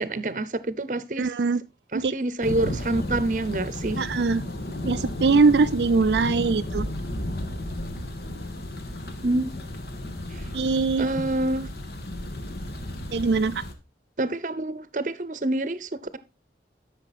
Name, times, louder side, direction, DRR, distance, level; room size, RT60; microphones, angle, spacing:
voice 1, 0.0-1.3 1.9-4.0 9.2-9.6 10.3-10.4 11.0-11.7 14.2-16.2, right 2 dB, 45° right, 0.8 m, -27 dB
voice 2, 1.2-1.6 1.9-2.1 4.0-4.4 4.8-6.9 10.5-11.1 13.1-13.6, right 4 dB, 75° right, 0.4 m, -22 dB
Thunder, 2.4-13.7, left 1 dB, 65° left, 1.6 m, -33 dB
12.0 x 6.5 x 4.2 m
head